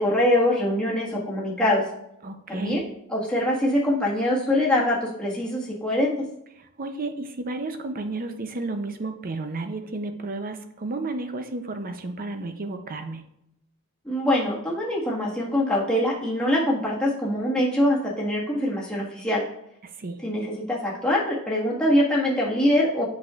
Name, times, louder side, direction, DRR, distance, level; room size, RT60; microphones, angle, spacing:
voice 1, 0.0-1.8 2.5-2.8 3.1-6.3 14.1-19.4 20.2-23.0, left 1 dB, 5° left, -6 dB, 1.7 m, -23 dB
voice 2, 2.2-2.8 6.8-13.2 20.0-20.2, right 2 dB, 40° right, 8 dB, 0.7 m, -32 dB
8.6 x 6.2 x 2.5 m, 0.81 s
head